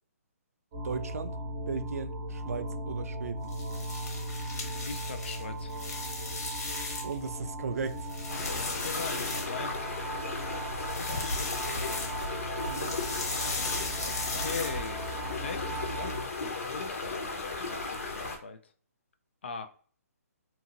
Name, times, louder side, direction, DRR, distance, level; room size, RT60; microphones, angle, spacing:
sound 1, 0.7-16.2, right 1 dB, 20° right, 0.7 m, -38 dB
voice 1, 0.8-1.3 1.7-3.5 7.0-8.1 12.7-13.0, right 5 dB, 70° right, 0.3 m, -36 dB
sound 2, 3.4-7.3 7.7-9.9 10.7-12.3 12.6-15.1, left 3 dB, 85° left, 1.3 m, -36 dB
voice 2, 4.9-5.8 8.3-10.0 11.0-12.1 14.0-18.7 19.4-19.7, left 5 dB, 45° left, 0.4 m, -41 dB
sound 3, 8.3-18.4, left 3 dB, 65° left, 0.8 m, -36 dB
2.9 x 2.7 x 2.4 m
hypercardioid pair, 175°, 8 cm